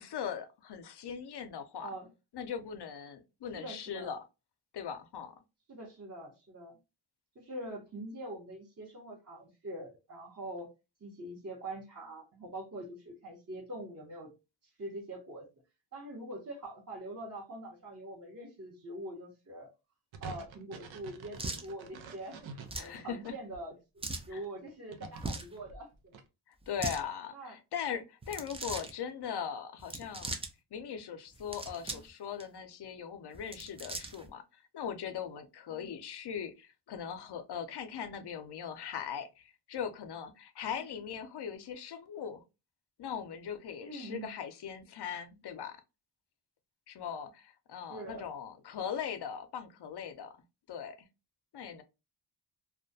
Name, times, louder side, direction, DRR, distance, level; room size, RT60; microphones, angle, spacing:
voice 1, 0.0-1.9 2.3-4.2 4.7-5.3 22.8-23.3 24.3-24.4 26.5-30.3 30.7-42.4 43.0-45.8 46.9-50.3 50.7-51.1 51.5-51.8, left 8 dB, 60° left, 0.6 m, -40 dB
voice 2, 3.5-4.1 5.7-6.7 7.3-10.7 11.0-14.3 14.8-15.5 15.9-19.7 20.2-26.1 27.3-27.6 31.9-32.0 35.7-35.9 40.8-41.0 43.8-44.4 47.9-48.3, right 1 dB, 35° right, 0.9 m, -44 dB
sound 1, 20.1-23.6 24.1-26.2, right 4 dB, 80° right, 0.6 m, -48 dB
sound 2, 21.4-21.7 22.7-22.9 24.0-24.3 25.1-25.5 26.6-27.0 28.2-28.9 29.8-30.5 31.3-32.1 32.4-32.5 33.3-34.3, right 2 dB, 15° right, 0.3 m, -39 dB
2.3 x 2.1 x 2.6 m
cardioid pair, 60°, 47 cm